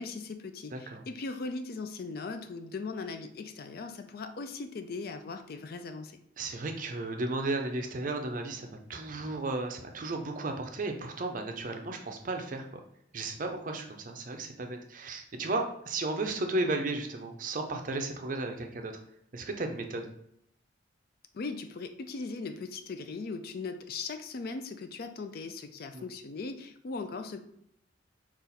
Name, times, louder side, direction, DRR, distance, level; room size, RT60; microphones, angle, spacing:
voice 1, 0.0-6.2 21.3-27.4, left 4 dB, 50° left, 8 dB, 0.4 m, -39 dB
voice 2, 0.7-1.0 6.4-12.8 13.1-18.9 19.3-20.1 25.9-26.0, right 2 dB, 45° right, 4 dB, 0.5 m, -34 dB
4.0 x 2.4 x 4.0 m, 0.74 s
head